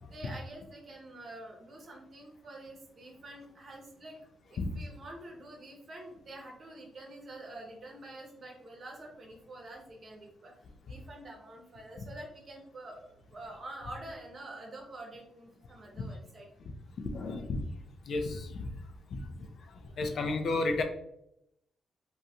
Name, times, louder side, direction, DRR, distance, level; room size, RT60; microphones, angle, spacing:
voice 1, 0.0-10.5 10.9-16.5 19.8-20.0, right 1 dB, 55° right, 1 dB, 0.8 m, -47 dB
voice 2, 17.1-17.6 18.1-18.6 19.1-19.2 20.0-20.8, left 3 dB, 60° left, 6 dB, 0.4 m, -31 dB
2.8 x 2.2 x 2.8 m, 0.76 s
hypercardioid pair, 40°, 0 cm